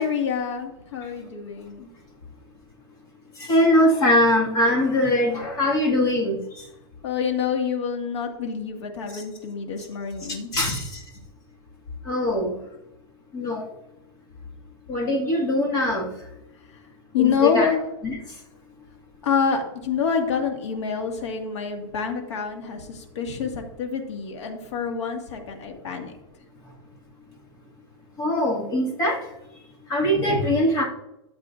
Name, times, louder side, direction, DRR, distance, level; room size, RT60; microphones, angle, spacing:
voice 1, 0.0-1.9 7.0-10.8 17.1-17.8 19.2-26.1, left 6 dB, 90° left, 3 dB, 2.0 m, -27 dB
voice 2, 3.4-6.7 9.1-9.2 10.5-11.0 12.1-12.6 13.3-13.7 14.9-16.1 17.2-17.7 18.0-18.2 28.2-29.2 29.9-30.8, left 1 dB, 25° left, -2 dB, 2.0 m, -22 dB
13.0 x 7.4 x 2.6 m, 0.91 s
supercardioid pair, 160°, 14 cm